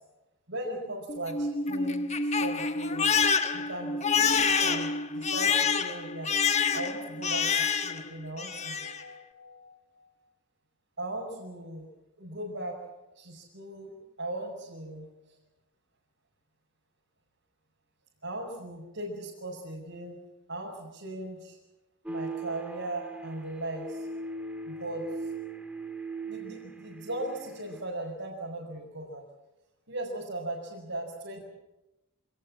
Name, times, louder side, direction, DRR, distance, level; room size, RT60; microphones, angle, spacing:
voice 1, 0.5-3.1 3.5-6.3 6.7-10.0 11.0-11.9 12.2-12.8 13.1-15.4 18.2-20.2 20.5-21.6 22.1-24.1 24.7-25.1 26.2-29.2 29.9-31.4, right 1 dB, 60° right, -4 dB, 5.4 m, -38 dB
Crying sobbing, 1.1-8.1 8.4-9.0, left 5 dB, 30° left, 1.3 m, -27 dB
sound 1, 22.1-27.8, right 3 dB, 5° right, 1.6 m, -39 dB
27.0 x 19.0 x 7.6 m, 0.97 s
head